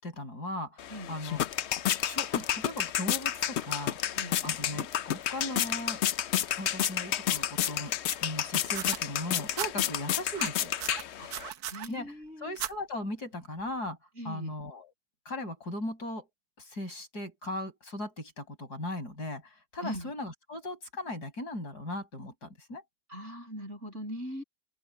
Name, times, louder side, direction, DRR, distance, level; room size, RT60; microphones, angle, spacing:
voice 1, 0.0-1.7 2.0-4.0 4.4-6.0 6.6-7.9 8.2-10.7 11.9-14.0 14.2-14.9 15.3-16.3 16.6-22.8, left 1 dB, 60° left, 7.3 m, -38 dB
sound 1, 0.8-11.5, left 11 dB, 85° left, 0.5 m, -31 dB
voice 2, 4.1-4.5 11.2-11.3 11.7-12.6 14.2-14.5 19.8-20.1 23.1-24.4, equal, 40° right, 6.9 m, -41 dB
sound 2, 8.7-9.7 10.3-11.9 12.6-12.7 13.7-13.8, right 10 dB, 65° right, 1.4 m, -37 dB
open air
omnidirectional pair, 1.9 m